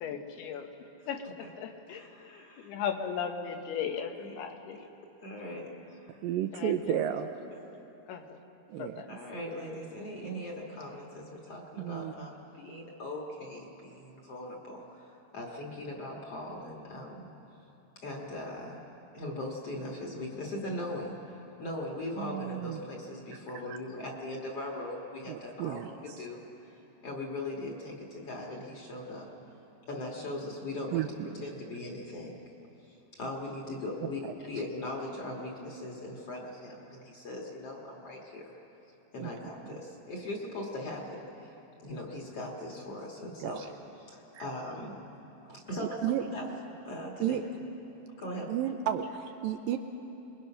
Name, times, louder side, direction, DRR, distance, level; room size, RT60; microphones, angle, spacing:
voice 1, 0.0-0.7 1.0-1.2 1.6-4.8 6.5-7.0 8.1-8.2 8.8-9.1, left 7 dB, 80° left, 5 dB, 3.1 m, -37 dB
voice 2, 1.0-1.5 1.9-2.7 4.2-4.4 4.7-4.9 5.2-6.2 9.1-17.3 18.0-18.8 19.1-29.3 29.9-31.1 31.4-32.3 32.9-38.5 39.1-43.7 44.1-45.0 45.5-46.5 46.8-47.4 48.2-48.5, left 1 dB, 45° left, -1 dB, 2.4 m, -40 dB
voice 3, 6.2-7.3 8.7-9.2 10.3-10.4 11.8-12.3 22.2-22.8 23.7-23.8 25.3-26.2 30.9-31.4 39.2-39.3 39.6-39.8 43.4-43.7 44.3-44.4 45.5-45.6 46.0-46.2 47.2-47.4 48.5-49.8, right 11 dB, 80° right, 7 dB, 2.1 m, -33 dB
27.0 x 21.0 x 5.8 m, 3.0 s
omnidirectional pair, 4.6 m